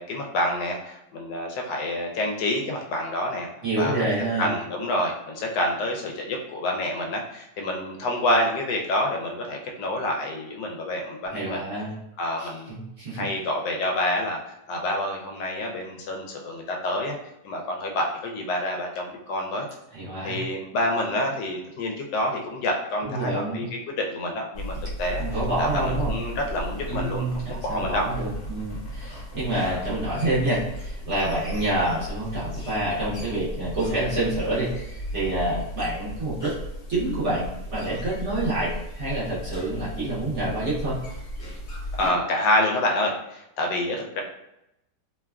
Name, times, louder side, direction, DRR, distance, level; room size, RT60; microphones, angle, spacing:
voice 1, 0.0-3.5 3.8-4.1 4.4-11.6 12.2-12.7 13.1-17.2 17.4-19.7 20.2-25.2 25.6-28.1 41.9-44.2, left 1 dB, 85° left, 1 dB, 1.2 m, -28 dB
voice 2, 3.6-4.5 11.3-11.9 12.4-13.3 19.9-20.4 23.0-23.6 25.2-26.1 26.9-36.5 36.9-41.0, right 1 dB, 50° right, -9 dB, 1.0 m, -27 dB
sound 1, 24.5-42.1, equal, 55° left, 1.0 m, -35 dB
3.1 x 2.3 x 2.3 m, 0.84 s
omnidirectional pair, 1.8 m